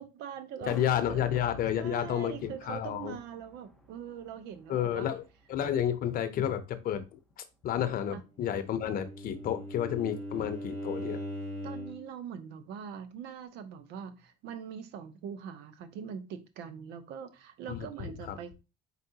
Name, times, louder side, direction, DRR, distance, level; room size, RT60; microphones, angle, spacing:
voice 1, 0.0-0.8 1.1-1.2 1.8-5.1 8.1-8.2 11.6-18.5, right 8 dB, 70° right, 0.8 m, -42 dB
voice 2, 0.7-3.2 4.7-5.2 5.5-7.2 7.6-11.2 17.7-17.8 18.3-18.4, left 10 dB, 55° left, 0.7 m, -31 dB
sound 1, 0.7-6.9 7.3-7.4, right 1 dB, ahead, 0.7 m, -52 dB
Bowed string instrument, 8.5-12.1, equal, 90° right, 1.8 m, -40 dB
4.6 x 4.1 x 2.8 m
cardioid pair, 110°, 18 cm